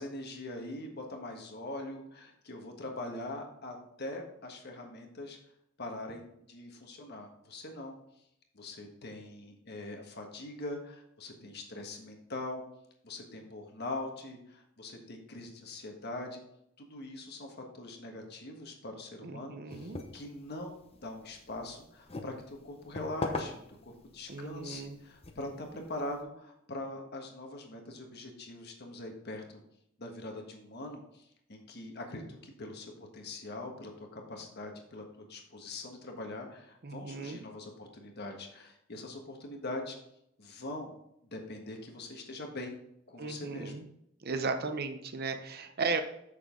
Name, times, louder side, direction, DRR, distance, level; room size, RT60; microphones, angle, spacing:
voice 1, 0.0-5.4 5.8-8.0 8.5-12.6 13.0-16.4 16.8-29.6 30.0-40.0 40.4-40.9 41.3-42.7 43.1-43.8, left 2 dB, 55° left, 3 dB, 1.4 m, -42 dB
voice 2, 19.2-20.0 24.3-25.0 36.8-37.4 43.2-43.8 44.2-46.0, right 4 dB, 50° right, 7 dB, 0.8 m, -35 dB
sound 1, 19.7-26.2, left 2 dB, 30° left, 0.8 m, -43 dB
7.2 x 6.5 x 3.8 m, 0.76 s
head